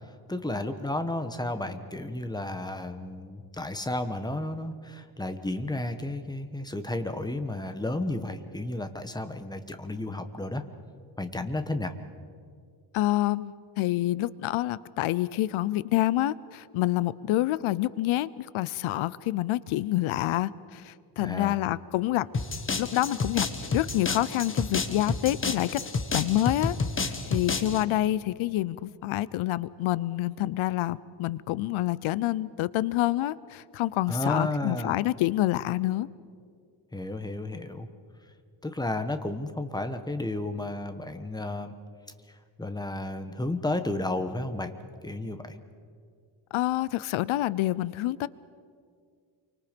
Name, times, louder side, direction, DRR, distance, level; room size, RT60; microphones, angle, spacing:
voice 1, 0.3-10.6 11.2-11.9 21.2-21.6 34.1-35.0 36.9-37.9 38.6-41.7 42.6-44.7 45.0-45.6, left 2 dB, 10° left, 8 dB, 1.1 m, -32 dB
voice 2, 12.9-22.3 22.8-25.8 26.1-36.1 46.5-48.3, left 15 dB, 90° left, 19 dB, 0.7 m, -27 dB
sound 1, 22.3-27.8, left 3 dB, 25° left, 1.4 m, -30 dB
28.0 x 24.5 x 5.2 m, 2.2 s
cardioid pair, 155°, 47 cm